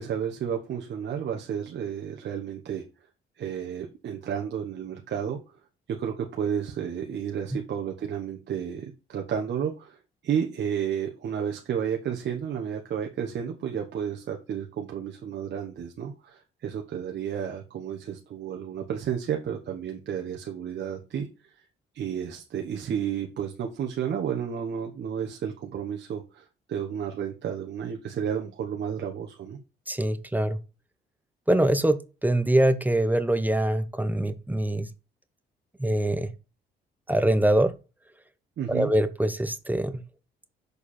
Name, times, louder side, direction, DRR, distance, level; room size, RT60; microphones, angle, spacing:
voice 1, 0.0-2.8 3.4-5.4 5.9-21.6 21.9-29.6 38.6-38.9, right 8 dB, 60° right, 1.1 m, -32 dB
voice 2, 29.9-30.6 31.5-34.9 35.8-36.3 37.1-37.7 38.7-40.0, right 1 dB, 10° right, 0.8 m, -24 dB
6.7 x 4.8 x 4.3 m
cardioid pair, 90°, 20 cm